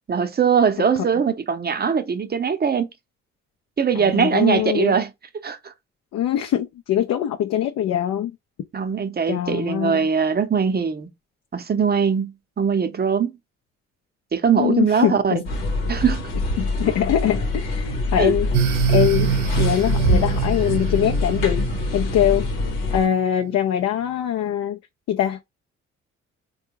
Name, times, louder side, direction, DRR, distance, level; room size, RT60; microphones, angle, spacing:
voice 1, 0.1-2.9 3.8-5.1 5.4-5.7 8.7-11.1 11.5-13.3 14.3-15.3 15.9-16.2 18.2-18.3, right 6 dB, 30° right, 0.7 m, -21 dB
voice 2, 4.0-4.9 6.1-8.3 9.3-10.1 14.6-15.5 16.6-18.5 18.9-19.3 19.6-21.7 21.9-22.5 22.9-24.8 25.1-25.4, left 10 dB, 60° left, 0.5 m, -22 dB
sound 1, 15.4-23.1, left 1 dB, 90° left, 0.9 m, -24 dB
sound 2, 18.5-23.1, right 9 dB, 85° right, 0.5 m, -25 dB
3.5 x 2.3 x 3.0 m
hypercardioid pair, 55°, 31 cm